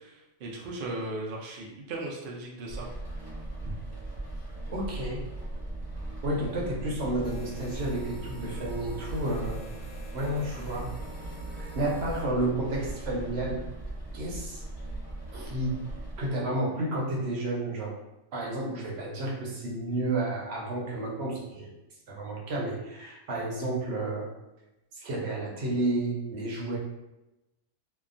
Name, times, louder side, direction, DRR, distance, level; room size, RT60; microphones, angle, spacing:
voice 1, 0.4-2.9 3.6-3.7, right 2 dB, 75° right, -2 dB, 0.4 m, -36 dB
Rain, 2.7-16.3, right 1 dB, 20° left, 0.9 m, -39 dB
voice 2, 4.7-5.2 6.2-9.6 10.1-11.0 11.5-13.7 14.1-14.6 15.3-15.8 16.2-17.9 18.3-21.7 22.1-24.3 24.9-26.8, right 1 dB, 60° right, -3 dB, 0.8 m, -31 dB
sound 1, 7.2-12.2, right 2 dB, 85° left, 1.1 m, -44 dB
2.7 x 2.3 x 2.4 m, 0.96 s
omnidirectional pair, 1.5 m